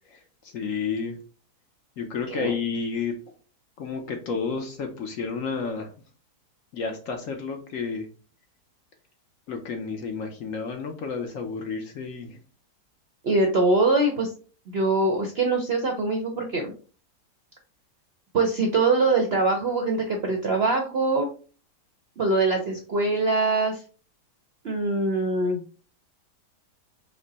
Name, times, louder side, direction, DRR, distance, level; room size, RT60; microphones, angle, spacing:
voice 1, 0.5-1.2 2.0-3.1 3.8-5.9 6.7-8.1 9.5-12.4, left 5 dB, 60° left, 4 dB, 0.9 m, -31 dB
voice 2, 13.2-14.3 14.7-16.7 18.3-21.3 22.2-23.8 24.6-25.6, right 3 dB, 60° right, 2 dB, 0.6 m, -23 dB
5.2 x 2.1 x 3.9 m, 0.38 s
omnidirectional pair, 1.8 m